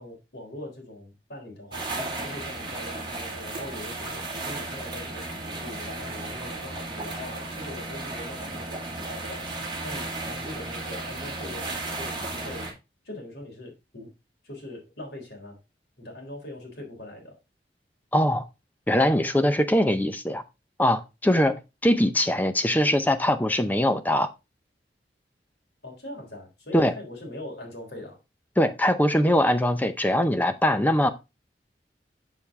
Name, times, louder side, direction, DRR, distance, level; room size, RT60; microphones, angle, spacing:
voice 1, 0.0-9.5 9.8-12.8 13.0-14.1 14.4-15.6 16.0-17.4 25.8-28.2, left 1 dB, 75° left, 3.6 m, -41 dB
sound 1, 1.7-12.7, right 2 dB, 25° right, 2.3 m, -34 dB
voice 2, 18.1-18.4 18.9-20.4 20.8-21.6 21.8-24.3 26.7-26.9 28.6-31.1, left 1 dB, 10° left, 0.6 m, -22 dB
7.2 x 6.9 x 3.5 m
head